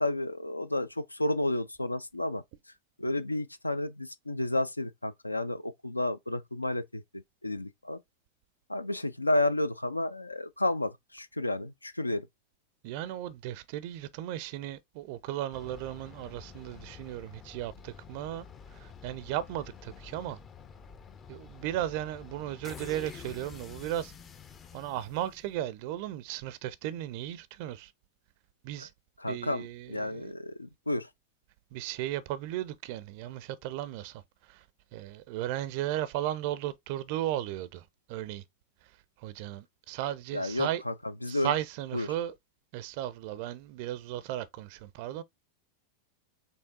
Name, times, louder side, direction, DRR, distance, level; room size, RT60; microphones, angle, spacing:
voice 1, 0.0-2.4 3.0-8.0 8.7-12.3 28.8-28.9 29.2-31.1 40.3-40.9 41.2-41.5 41.9-42.1, left 2 dB, 85° left, 0.4 m, -31 dB
voice 2, 12.8-18.5 18.7-20.4 21.3-24.1 24.7-27.9 28.6-28.9 29.3-30.3 31.7-34.2 34.5-34.6 34.9-38.4 39.2-40.8 41.3-42.3 42.7-45.2, right 13 dB, 45° right, 0.4 m, -35 dB
sound 1, 15.5-25.8, left 6 dB, 25° left, 0.5 m, -49 dB
5.4 x 3.3 x 2.7 m
figure-of-eight pair, 90°, 0 cm